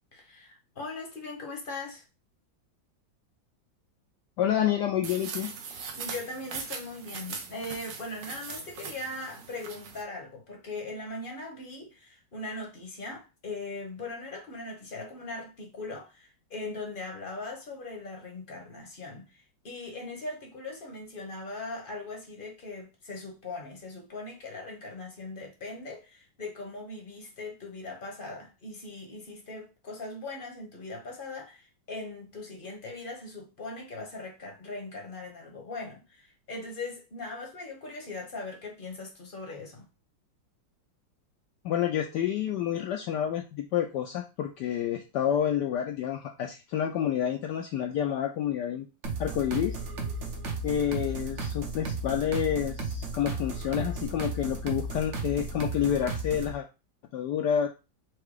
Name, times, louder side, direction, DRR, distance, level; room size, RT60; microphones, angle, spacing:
voice 1, 0.1-2.0 5.9-39.8, left 2 dB, 35° left, 0.9 m, -40 dB
voice 2, 4.4-5.5 41.6-48.9 49.2-49.8 50.6-56.7 57.1-57.7, left 9 dB, 75° left, 1.0 m, -29 dB
sound 1, 5.0-10.0, right 5 dB, 70° right, 1.4 m, -40 dB
sound 2, 49.0-56.5, right 2 dB, 50° right, 1.0 m, -34 dB
4.7 x 2.3 x 4.8 m
omnidirectional pair, 2.1 m